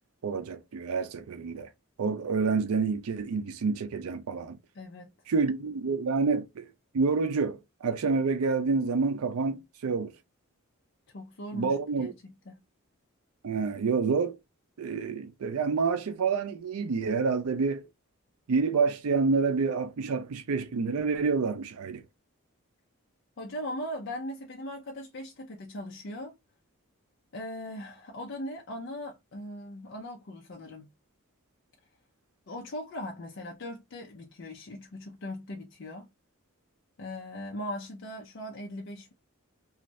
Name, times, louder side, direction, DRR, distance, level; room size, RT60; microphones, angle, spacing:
voice 1, 0.2-1.7 2.0-4.6 5.3-6.7 6.9-10.1 11.5-12.1 13.4-14.4 14.8-17.9 18.5-22.0, right 4 dB, 85° right, 0.4 m, -28 dB
voice 2, 4.7-5.1 11.1-12.6 23.4-26.3 27.3-30.9 32.5-36.1 37.0-39.1, left 1 dB, 55° left, 0.5 m, -39 dB
2.6 x 2.4 x 3.1 m
head